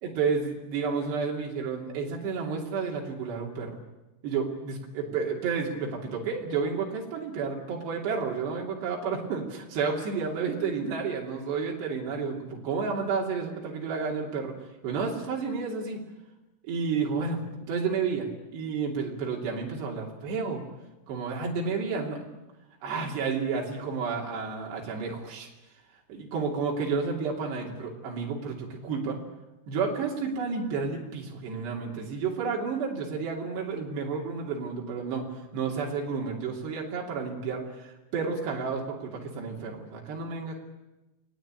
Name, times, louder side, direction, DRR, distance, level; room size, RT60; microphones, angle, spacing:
voice 1, 0.0-3.8 4.2-14.5 14.8-16.0 16.7-17.4 17.7-20.6 21.1-22.4 22.8-25.5 26.1-29.2 29.7-40.6, right 5 dB, 90° right, -1 dB, 5.1 m, -31 dB
29.5 x 20.5 x 9.1 m, 1.0 s
omnidirectional pair, 4.7 m